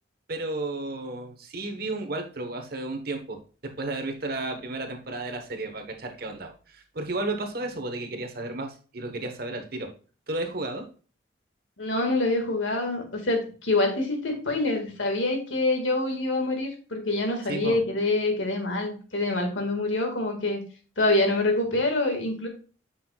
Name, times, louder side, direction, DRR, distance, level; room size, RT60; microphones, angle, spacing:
voice 1, 0.3-9.9 10.3-10.9 17.5-17.8, right 2 dB, 50° right, 5 dB, 1.1 m, -33 dB
voice 2, 11.8-20.6 21.0-22.5, left 2 dB, 80° left, 3 dB, 1.8 m, -26 dB
8.5 x 5.7 x 2.3 m, 0.37 s
head